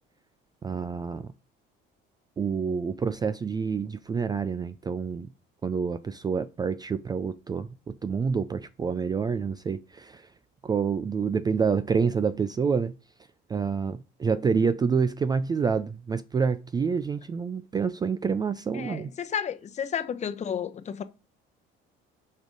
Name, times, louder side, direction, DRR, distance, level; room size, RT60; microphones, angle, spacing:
voice 1, 0.6-1.3 2.4-5.3 5.6-10.3 10.6-12.9 13.5-19.1, right 5 dB, 20° right, 0.3 m, -27 dB
voice 2, 18.7-21.0, left 8 dB, 35° left, 0.8 m, -32 dB
6.4 x 5.4 x 5.0 m
cardioid pair, 135°, 21 cm